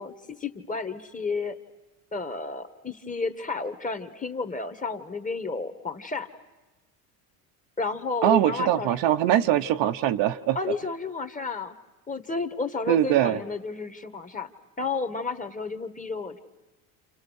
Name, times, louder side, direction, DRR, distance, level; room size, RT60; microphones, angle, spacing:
voice 1, 0.0-1.6 2.1-6.3 7.8-8.9 10.5-11.7 12.1-14.5 14.8-16.4, left 4 dB, 15° left, 8 dB, 1.6 m, -31 dB
voice 2, 8.2-10.6 12.9-13.4, right 12 dB, 60° right, 8 dB, 1.1 m, -22 dB
29.0 x 29.0 x 6.5 m, 1.1 s
supercardioid pair, 100°, 49 cm